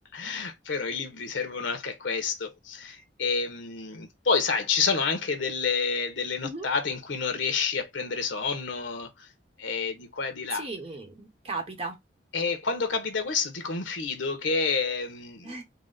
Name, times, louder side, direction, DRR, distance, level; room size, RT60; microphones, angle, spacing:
voice 1, 0.1-9.3 9.6-10.7 12.3-15.5, left 5 dB, 80° left, 0.9 m, -29 dB
voice 2, 10.5-12.0 15.4-15.6, right 3 dB, 30° right, 0.9 m, -36 dB
3.9 x 2.1 x 3.9 m
head